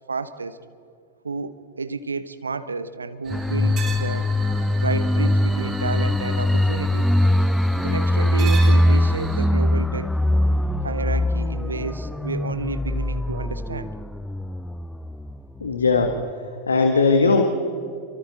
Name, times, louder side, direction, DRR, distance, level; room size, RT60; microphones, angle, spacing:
voice 1, 0.1-0.6 1.2-4.3 4.8-7.1 7.8-10.1 10.8-13.9, right 4 dB, 75° right, 13 dB, 1.0 m, -31 dB
sound 1, 3.2-9.5, right 4 dB, 25° right, 4.0 m, -36 dB
sound 2, 3.3-15.7 16.0-16.1, left 1 dB, 5° left, 0.5 m, -22 dB
voice 2, 15.6-16.1 16.7-17.4, left 4 dB, 75° left, 5 dB, 1.7 m, -18 dB
29.0 x 24.5 x 4.3 m, 2.5 s
figure-of-eight pair, 90°, 0 cm